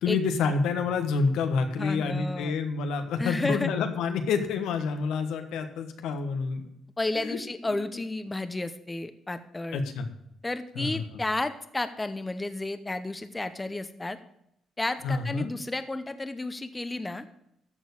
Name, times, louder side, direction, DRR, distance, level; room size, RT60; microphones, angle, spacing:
voice 1, 0.0-6.6 7.1-7.4 7.6-7.8 9.7-10.1 10.7-11.0 15.0-15.5, left 5 dB, 85° left, 7 dB, 1.4 m, -28 dB
voice 2, 1.8-2.5 3.2-3.7 7.0-9.8 10.4-14.2 14.8-17.2, left 2 dB, 15° left, 11 dB, 0.8 m, -32 dB
13.5 x 4.6 x 8.4 m, 0.77 s
cardioid pair, 90°, 0 cm